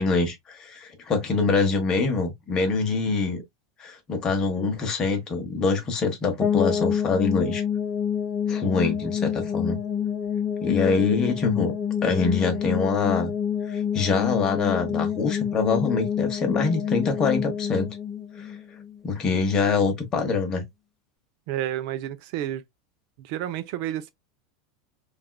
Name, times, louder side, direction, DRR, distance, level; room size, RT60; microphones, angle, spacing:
voice 1, 0.0-3.4 3.8-7.6 8.5-9.8 10.6-11.7 12.0-13.3 13.7-17.9 18.4-18.5 19.0-20.7, left 4 dB, 25° left, 0.9 m, -24 dB
sound 1, 6.4-19.3, left 8 dB, 5° left, 0.6 m, -27 dB
voice 2, 21.5-22.6 23.2-24.1, right 12 dB, 50° right, 0.5 m, -30 dB
3.4 x 2.4 x 2.2 m
supercardioid pair, 160°, 3 cm